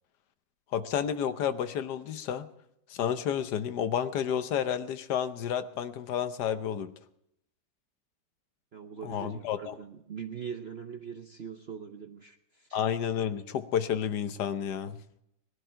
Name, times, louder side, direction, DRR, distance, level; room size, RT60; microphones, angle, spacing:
voice 1, 0.7-2.5 2.9-6.9 9.0-9.7 12.7-15.0, left 8 dB, 65° left, 11 dB, 1.3 m, -31 dB
voice 2, 8.7-12.8, right 7 dB, 55° right, 6 dB, 0.7 m, -42 dB
19.0 x 11.5 x 4.5 m, 0.80 s
omnidirectional pair, 2.0 m